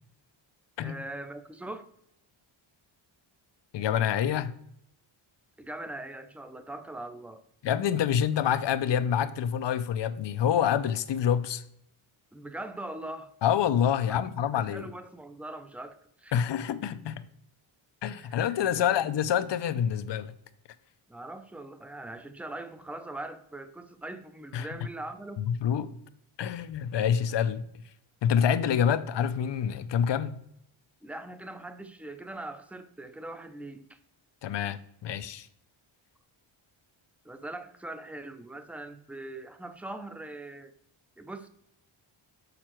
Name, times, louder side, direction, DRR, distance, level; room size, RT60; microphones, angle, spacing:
voice 1, 0.8-1.9 5.6-7.4 12.3-13.3 14.1-14.2 14.5-16.4 18.2-18.4 18.7-19.0 21.1-25.4 31.0-34.0 37.2-40.7 41.2-41.5, right 2 dB, 5° right, 0.5 m, -41 dB
voice 2, 3.7-4.5 7.6-11.6 13.4-14.9 16.3-17.2 18.0-20.3 24.5-24.7 25.4-25.9 26.4-27.6 28.2-30.4 34.4-35.5, left 9 dB, 60° left, 0.6 m, -27 dB
6.6 x 5.6 x 4.4 m
wide cardioid pair, 115°, 49 cm